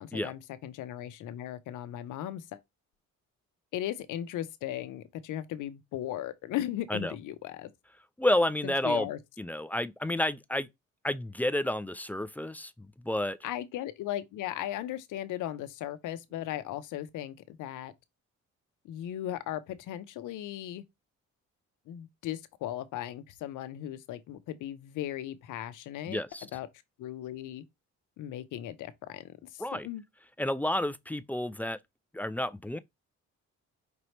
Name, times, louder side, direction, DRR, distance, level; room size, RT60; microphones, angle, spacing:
voice 1, 0.0-2.6 3.7-7.7 8.6-9.2 13.4-17.9 18.8-20.8 21.9-26.2 26.5-26.7 27.0-27.6 28.2-30.0, left 12 dB, 85° left, 0.7 m, -37 dB
voice 2, 8.2-9.1 9.4-10.7 11.0-13.4 26.1-26.5 29.6-29.9 30.4-31.8 32.1-32.8, left 1 dB, 5° left, 0.4 m, -30 dB
5.3 x 2.9 x 3.2 m
cardioid pair, 90°, 30 cm